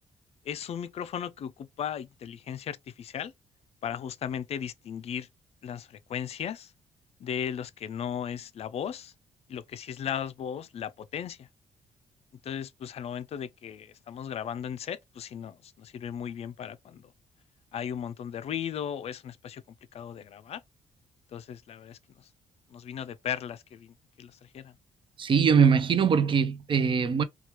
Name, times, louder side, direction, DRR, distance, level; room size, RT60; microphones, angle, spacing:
voice 1, 0.4-3.3 3.8-5.3 5.6-6.7 7.2-9.1 9.5-11.5 12.4-17.1 17.7-19.6 19.9-20.6 21.3-22.3 22.7-24.7, left 8 dB, 55° left, 0.4 m, -36 dB
voice 2, 25.2-27.2, right 6 dB, 45° right, 0.5 m, -22 dB
2.8 x 2.3 x 3.1 m
cardioid pair, 70°, 12 cm